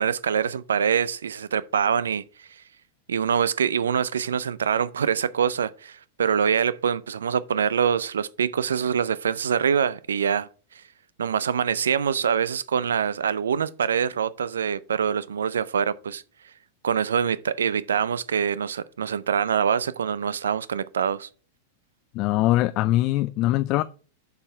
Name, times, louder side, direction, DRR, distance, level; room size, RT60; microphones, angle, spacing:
voice 1, 0.0-2.2 3.1-10.5 11.2-16.2 16.8-21.3, right 7 dB, 80° right, 0.4 m, -24 dB
voice 2, 22.1-23.8, left 16 dB, 45° left, 0.3 m, -22 dB
6.5 x 5.8 x 4.4 m
hypercardioid pair, 105°, 0 cm